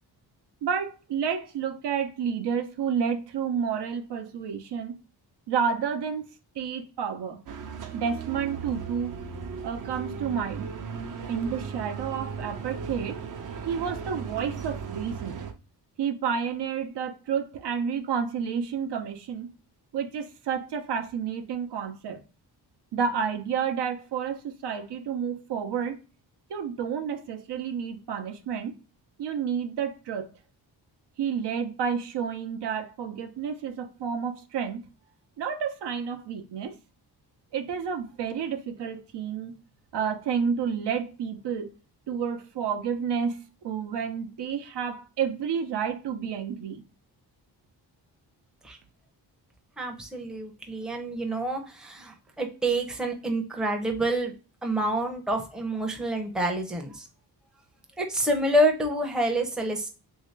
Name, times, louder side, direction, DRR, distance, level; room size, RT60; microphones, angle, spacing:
voice 1, 0.6-5.0 5.5-6.2 6.5-7.4 7.9-9.2 9.6-10.7 11.3-13.2 13.7-15.4 16.0-19.5 19.9-22.2 22.9-26.0 26.5-28.7 29.2-30.3 31.2-34.9 35.4-36.7 37.5-39.5 39.9-41.7 42.1-46.8, right 7 dB, 85° right, 0.7 m, -30 dB
sound 1, 7.5-15.5, right 6 dB, 50° right, 0.6 m, -37 dB
voice 2, 49.8-54.3 54.6-57.1 58.0-59.9, right 1 dB, ahead, 0.5 m, -27 dB
3.3 x 2.7 x 3.1 m
wide cardioid pair, 165°, 40 cm